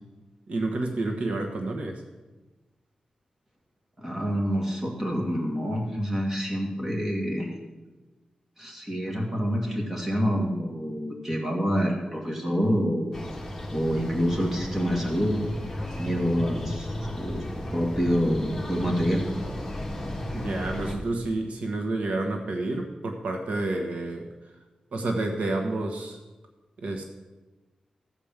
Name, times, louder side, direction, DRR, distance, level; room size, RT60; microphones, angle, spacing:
voice 1, 0.5-2.0 20.3-24.3 24.9-26.2 26.8-27.0, right 2 dB, 75° right, 2 dB, 1.3 m, -29 dB
voice 2, 4.0-7.5 8.6-13.2 13.7-15.4 16.0-17.5 17.7-19.2, equal, 15° right, -1 dB, 2.2 m, -27 dB
sound 1, 13.1-20.9, left 1 dB, 15° left, 2.0 m, -34 dB
14.5 x 5.1 x 7.3 m, 1.2 s
wide cardioid pair, 140°, 2 cm